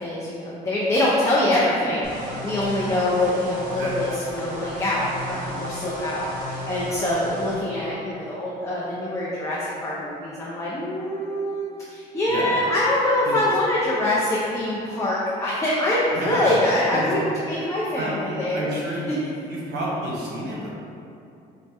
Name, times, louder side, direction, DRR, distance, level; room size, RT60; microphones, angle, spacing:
voice 1, 0.0-6.3 6.6-18.7 19.1-19.2, left 1 dB, 15° left, -7 dB, 0.5 m, -24 dB
sound 1, 2.0-7.6, equal, 50° right, 0.9 m, -34 dB
voice 2, 16.1-16.5 16.9-17.1 18.0-18.1 18.5-19.1 19.4-20.7, right 1 dB, 80° right, -5 dB, 0.9 m, -30 dB
4.5 x 2.1 x 2.8 m, 2.7 s
cardioid pair, 110°, 17 cm